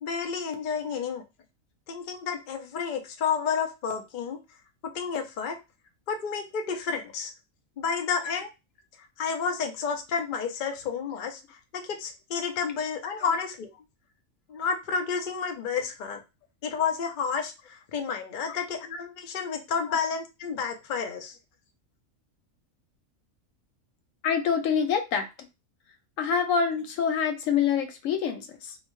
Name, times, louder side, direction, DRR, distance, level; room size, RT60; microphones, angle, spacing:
voice 1, 0.0-1.2 1.9-4.4 4.9-5.6 6.1-7.3 7.8-8.5 9.2-13.7 14.5-16.2 16.6-21.4, left 6 dB, 55° left, 4 dB, 0.5 m, -30 dB
voice 2, 24.2-25.3 26.2-28.8, left 7 dB, 75° left, 7 dB, 0.9 m, -26 dB
2.7 x 2.1 x 3.0 m, 0.25 s
omnidirectional pair, 1.4 m